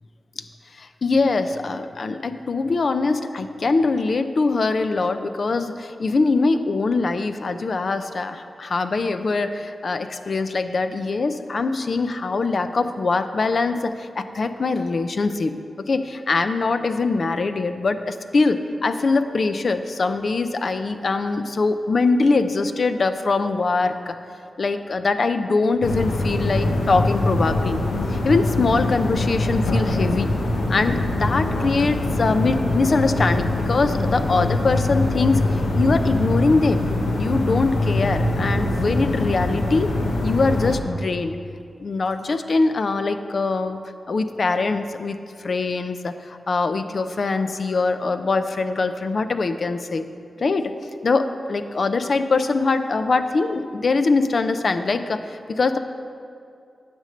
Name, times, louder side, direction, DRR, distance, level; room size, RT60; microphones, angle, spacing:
voice 1, 0.8-15.5 15.9-24.2 24.6-27.8 28.1-30.3 30.7-36.8 37.2-39.9 40.2-41.3 41.8-43.8 44.1-45.2 45.4-50.1 50.4-50.7 51.0-55.8, left 3 dB, 60° left, 9 dB, 0.6 m, -22 dB
sound 1, 25.8-40.8, left 2 dB, 90° left, 1.1 m, -23 dB
9.6 x 5.3 x 7.7 m, 2.4 s
cardioid pair, 55°, 0 cm